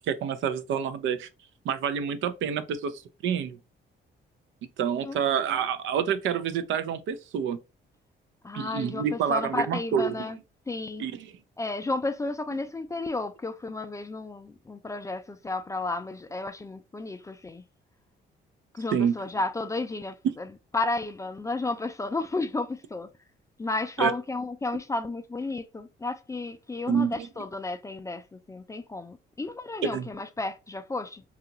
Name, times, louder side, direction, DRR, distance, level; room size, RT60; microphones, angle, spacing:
voice 1, 0.1-1.3 1.6-3.6 4.8-7.6 8.5-10.3 11.0-11.3 18.9-19.1 24.0-24.1 26.9-27.2 29.8-30.1, right 7 dB, 75° right, 0.5 m, -28 dB
voice 2, 8.4-10.4 10.7-11.0 11.6-17.6 18.7-20.5 20.7-23.1 23.6-31.2, left 2 dB, 15° left, 0.3 m, -32 dB
2.8 x 2.4 x 2.7 m
cardioid pair, 90°, 20 cm